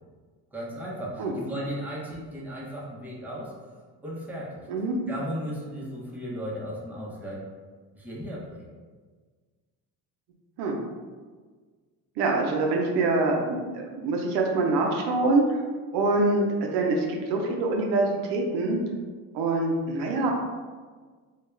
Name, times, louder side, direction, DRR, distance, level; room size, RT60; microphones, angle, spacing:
voice 1, 0.5-7.4 7.9-8.7, equal, 5° right, -5 dB, 0.6 m, -36 dB
voice 2, 12.2-15.5 15.9-18.8 19.3-20.3, right 2 dB, 85° right, 0 dB, 0.5 m, -25 dB
2.3 x 2.2 x 3.1 m, 1.5 s
cardioid pair, 90°, 39 cm